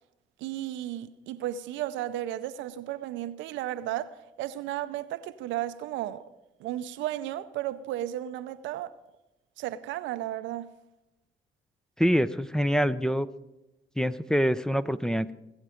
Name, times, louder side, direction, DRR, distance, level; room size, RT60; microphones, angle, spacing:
voice 1, 0.4-6.2 6.6-8.9 9.6-10.7, right 13 dB, 85° right, 0.6 m, -34 dB
voice 2, 12.0-13.3 14.0-15.3, equal, 5° left, 0.6 m, -25 dB
20.5 x 8.1 x 5.0 m
supercardioid pair, 60°, 19 cm